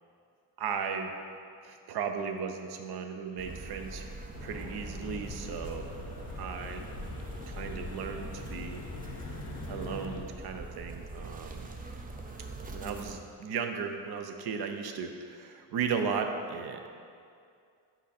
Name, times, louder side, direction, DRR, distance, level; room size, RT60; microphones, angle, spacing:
voice 1, 0.6-1.1 1.6-4.1 4.4-5.9 6.4-6.9 7.5-8.9 9.7-11.7 12.6-16.9, right 6 dB, 60° right, 6 dB, 0.6 m, -36 dB
sound 1, 3.4-13.1, right 2 dB, 20° right, 0.4 m, -43 dB
sound 2, 4.3-10.3, left 5 dB, 40° left, 0.6 m, -43 dB
6.0 x 4.4 x 4.2 m, 2.4 s
cardioid pair, 115°, 42 cm